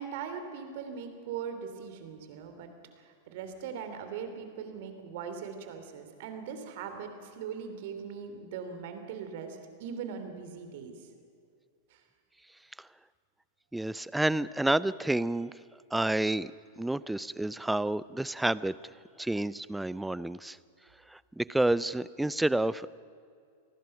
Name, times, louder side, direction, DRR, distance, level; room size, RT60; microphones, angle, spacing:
voice 1, 0.0-2.7 3.0-11.1 11.9-12.0, right 6 dB, 55° right, 7 dB, 3.3 m, -40 dB
voice 2, 13.7-15.5 15.9-16.5 16.8-18.8 19.2-20.6 21.1-22.9, right 1 dB, 5° right, 19 dB, 0.5 m, -29 dB
28.0 x 19.5 x 5.9 m, 2.3 s
figure-of-eight pair, 95°, 0 cm